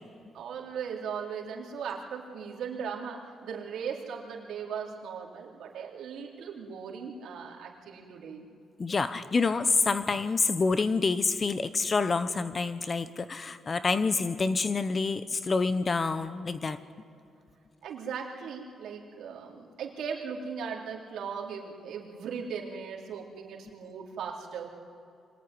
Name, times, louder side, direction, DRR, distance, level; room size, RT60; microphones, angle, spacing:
voice 1, 0.3-8.5 17.8-24.7, right 6 dB, 75° right, -1 dB, 3.8 m, -38 dB
voice 2, 8.8-16.8, left 4 dB, 30° left, 13 dB, 0.9 m, -27 dB
24.5 x 20.5 x 9.8 m, 2.5 s
cardioid pair, 130°, 0 cm